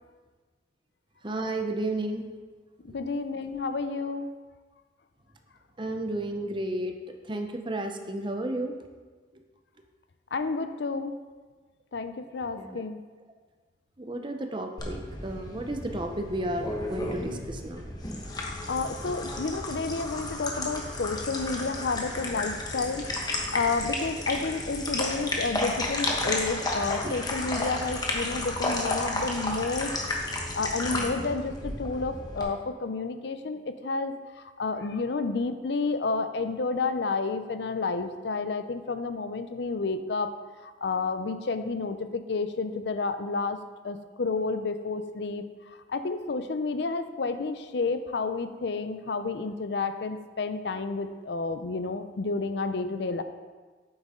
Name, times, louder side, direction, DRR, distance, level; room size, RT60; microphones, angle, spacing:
voice 1, 1.2-2.2 2.9-3.0 5.8-8.7 12.6-12.8 14.0-17.8 27.0-27.1, right 1 dB, 25° right, 5 dB, 0.7 m, -32 dB
voice 2, 2.8-4.3 10.3-11.2 11.9-13.0 18.3-29.9 30.3-34.1 34.6-40.3 40.6-43.6 43.8-45.4 45.9-53.2, left 4 dB, 60° left, 10 dB, 0.5 m, -30 dB
sound 1, 14.8-32.4, left 2 dB, 20° left, 1.1 m, -32 dB
8.9 x 7.9 x 3.7 m, 1.4 s
head